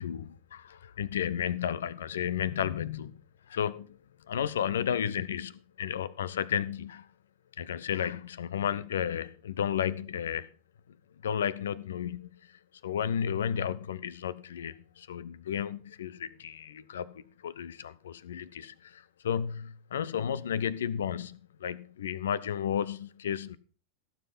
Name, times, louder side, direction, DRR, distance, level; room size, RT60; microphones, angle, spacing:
voice 1, 0.0-3.1 3.5-4.0 4.3-7.1 7.6-10.5 11.2-23.6, left 9 dB, 65° left, 0.8 m, -33 dB
15.5 x 7.4 x 5.6 m
figure-of-eight pair, 90°, 0 cm